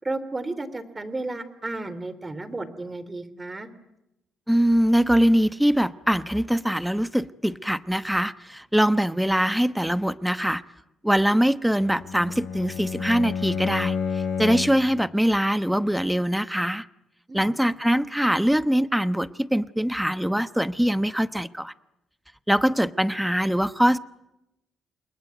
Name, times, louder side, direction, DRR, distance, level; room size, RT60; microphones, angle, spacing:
voice 1, 0.0-3.7 17.3-17.5, right 2 dB, 20° right, 15 dB, 3.0 m, -33 dB
voice 2, 4.5-10.6 11.0-16.9 17.3-21.7 22.5-24.0, equal, 5° right, 14 dB, 1.0 m, -23 dB
Bowed string instrument, 11.7-14.9, left 6 dB, 70° left, 3.8 m, -30 dB
29.0 x 21.5 x 9.2 m, 0.91 s
cardioid pair, 90°, 0 cm